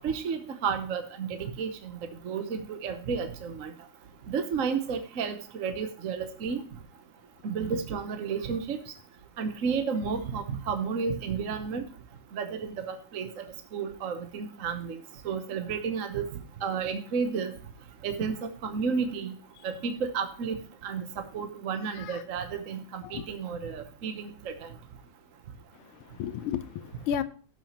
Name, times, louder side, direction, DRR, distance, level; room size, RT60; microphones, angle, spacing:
voice 1, 0.0-1.9 2.2-3.7 4.3-6.6 7.4-8.8 9.4-11.9 12.3-13.3 13.7-16.2 16.6-17.5 18.0-19.3 19.6-20.6 20.8-24.7, right 6 dB, 55° right, 1.0 m, -32 dB
voice 2, 26.1-27.2, left 10 dB, 80° left, 1.6 m, -33 dB
17.5 x 6.1 x 2.9 m
omnidirectional pair, 2.4 m